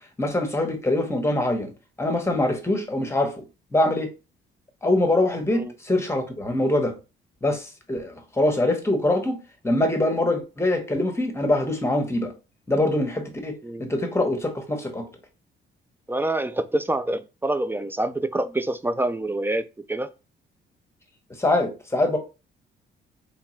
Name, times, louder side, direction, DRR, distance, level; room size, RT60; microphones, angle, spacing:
voice 1, 0.2-1.7 2.0-3.4 3.7-4.1 4.8-6.9 7.4-9.4 9.6-12.3 12.7-15.1 21.4-22.2, left 1 dB, 15° left, 1.0 m, -23 dB
voice 2, 16.1-20.1, right 2 dB, 10° right, 0.3 m, -26 dB
3.6 x 3.2 x 3.1 m
cardioid pair, 90°, 20 cm